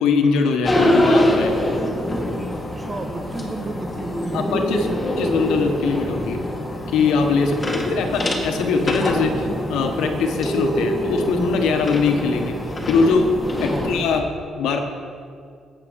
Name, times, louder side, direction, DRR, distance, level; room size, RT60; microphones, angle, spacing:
voice 1, 0.0-1.5 4.3-4.9 5.2-6.5 6.9-12.6 12.8-14.8, left 4 dB, 85° left, 5 dB, 1.3 m, -21 dB
sound 1, 0.6-14.2, left 1 dB, 25° left, 1.7 m, -24 dB
voice 2, 2.5-5.0 7.4-8.3 13.7-14.1, right 2 dB, 30° right, 6 dB, 1.3 m, -34 dB
13.5 x 8.0 x 5.3 m, 2.3 s
cardioid pair, 90°, 0 cm